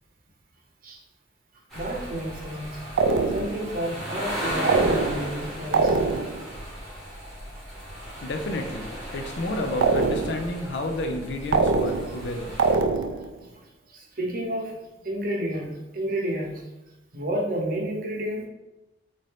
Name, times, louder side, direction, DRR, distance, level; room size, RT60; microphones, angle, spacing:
sound 1, 1.7-12.7, equal, ahead, 1.3 m, -36 dB
voice 1, 1.7-2.8 3.3-6.3 7.5-7.6 13.4-13.6 13.9-14.8 15.0-16.6 17.1-18.5, right 1 dB, 50° right, -1 dB, 0.7 m, -30 dB
sound 2, 3.0-3.7 4.7-5.4 5.7-6.5 9.8-10.5 11.5-12.3 12.6-13.3, right 4 dB, 70° right, 0.3 m, -23 dB
voice 2, 8.2-12.6, left 1 dB, 65° left, 5 dB, 0.5 m, -31 dB
4.1 x 2.6 x 3.3 m, 0.98 s
head